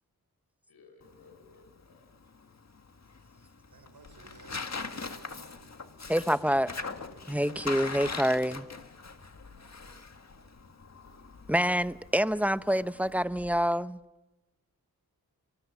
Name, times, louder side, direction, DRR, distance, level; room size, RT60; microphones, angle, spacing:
voice 1, 0.7-2.1 6.8-6.9 9.8-9.9, left 4 dB, 90° left, 4.5 m, -58 dB
Tearing, 1.0-13.2, left 4 dB, 45° left, 1.8 m, -42 dB
voice 2, 3.7-5.8 6.2-6.4, right 4 dB, 75° right, 4.7 m, -57 dB
sound 1, 4.0-5.8 6.0-7.8 8.0-13.6, left 3 dB, 70° left, 6.7 m, -58 dB
voice 3, 6.1-6.7 7.3-8.7 11.5-14.0, equal, 5° right, 0.8 m, -27 dB
24.5 x 19.5 x 8.5 m
cardioid pair, 55°, 37 cm